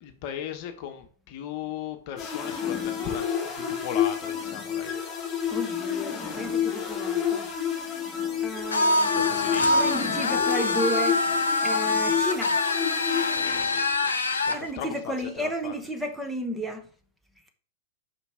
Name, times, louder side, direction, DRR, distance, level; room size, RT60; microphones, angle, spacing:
voice 1, 0.0-3.3 3.5-4.9 9.1-10.4 13.3-14.1 14.4-15.7, left 9 dB, 45° left, 1.1 m, -38 dB
sound 1, 2.2-14.0, left 8 dB, 25° left, 2.9 m, -30 dB
voice 2, 5.5-7.5 8.4-12.6 14.5-16.9, equal, 5° right, 1.1 m, -33 dB
sound 2, 8.7-14.6, left 2 dB, 75° left, 0.9 m, -25 dB
5.9 x 5.1 x 4.9 m
figure-of-eight pair, 100°, 0 cm